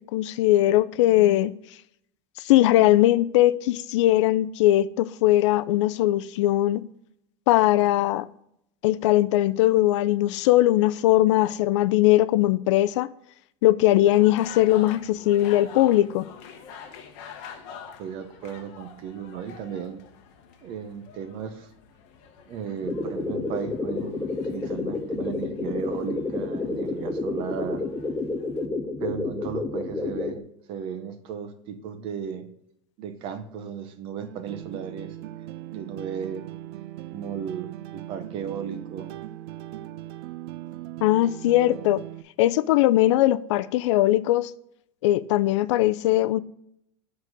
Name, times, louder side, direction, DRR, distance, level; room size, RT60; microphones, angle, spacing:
voice 1, 0.1-1.5 2.4-6.8 7.5-8.3 8.8-13.1 13.6-16.3 41.0-42.0 42.4-44.5 45.0-46.4, left 15 dB, 70° left, 0.4 m, -20 dB
sound 1, 14.0-28.7, left 7 dB, 45° left, 1.0 m, -46 dB
voice 2, 18.0-20.0 20.6-21.7 22.5-27.8 29.0-30.4 30.7-32.4 33.0-35.2 35.7-36.4 37.1-39.1, right 7 dB, 35° right, 0.7 m, -35 dB
sound 2, 22.8-30.4, left 3 dB, 5° left, 0.4 m, -30 dB
sound 3, 34.2-42.2, right 14 dB, 55° right, 0.4 m, -39 dB
7.3 x 4.1 x 6.3 m
supercardioid pair, 175°, 16 cm